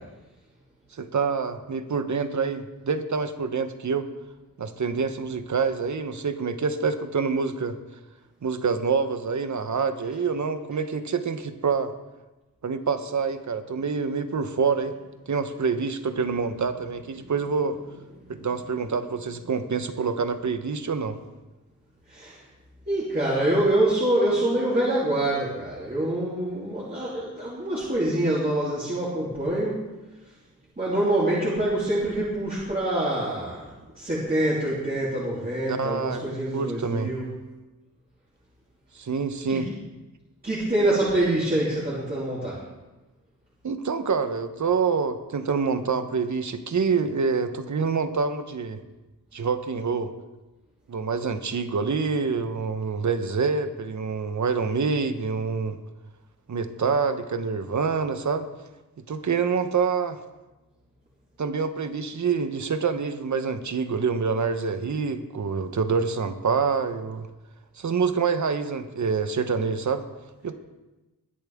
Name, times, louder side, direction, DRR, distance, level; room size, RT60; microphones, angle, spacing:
voice 1, 1.0-4.1 4.6-7.8 8.4-11.9 12.6-15.0 15.3-17.8 18.3-21.2 35.7-37.1 38.9-39.7 43.6-48.8 49.3-50.1 50.9-55.8 56.5-58.5 59.1-60.2 61.4-67.3 67.8-70.0 70.4-70.5, right 5 dB, 50° right, 9 dB, 1.1 m, -26 dB
voice 2, 22.9-29.8 30.8-33.7 33.9-37.3 39.5-39.6 40.4-42.6, right 1 dB, 25° right, -8 dB, 3.1 m, -25 dB
20.5 x 10.5 x 3.6 m, 1.1 s
wide cardioid pair, 120°, 36 cm